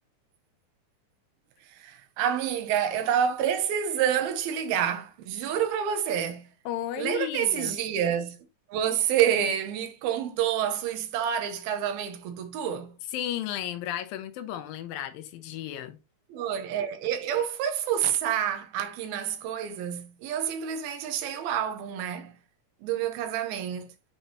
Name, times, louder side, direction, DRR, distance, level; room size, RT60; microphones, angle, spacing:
voice 1, 1.7-6.5 7.0-8.4 8.7-13.0 16.3-22.3 22.8-23.9, right 9 dB, 90° right, 2.8 m, -28 dB
voice 2, 6.7-7.8 13.1-16.0, left 11 dB, 80° left, 2.5 m, -34 dB
8.0 x 4.3 x 2.9 m
omnidirectional pair, 4.2 m